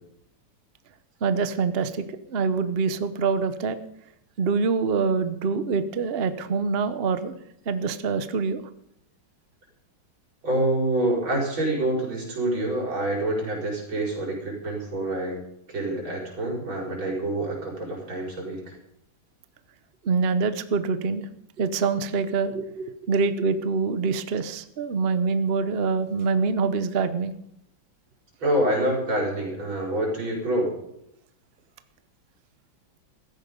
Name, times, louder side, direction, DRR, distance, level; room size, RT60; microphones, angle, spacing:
voice 1, 1.2-3.8 4.4-7.3 7.7-8.6 20.0-21.3 21.6-27.3, right 5 dB, 45° right, 11 dB, 0.8 m, -25 dB
voice 2, 10.4-15.4 15.7-18.7 28.4-30.7, right 1 dB, 85° right, -2 dB, 5.7 m, -26 dB
15.5 x 13.5 x 5.3 m, 0.77 s
omnidirectional pair, 2.1 m